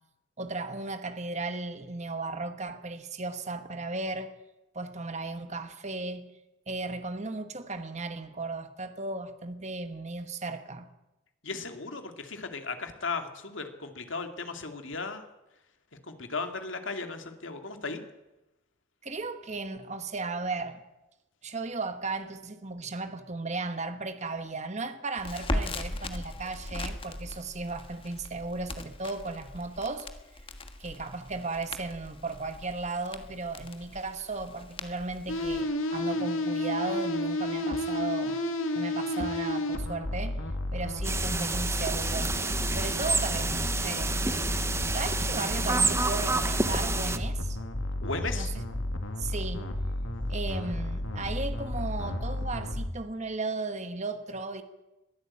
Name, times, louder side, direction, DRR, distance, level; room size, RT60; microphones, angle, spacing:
voice 1, 0.4-4.3 4.7-6.3 6.7-10.9 19.0-20.8 21.4-30.1 30.8-38.4 38.7-40.4 40.7-42.3 42.7-44.2 44.9-47.6 48.3-48.5 49.2-49.6 50.3-54.6, right 3 dB, 35° right, 1.3 m, -35 dB
voice 2, 11.4-15.2 16.1-18.0 48.0-48.5, left 4 dB, 70° left, 2.4 m, -36 dB
Crackle, 25.2-35.6, left 1 dB, 25° left, 1.5 m, -39 dB
sound 1, 35.3-52.9, left 1 dB, 90° left, 2.4 m, -32 dB
sound 2, 41.0-47.2, right 3 dB, 15° right, 1.0 m, -29 dB
21.5 x 14.0 x 8.6 m
head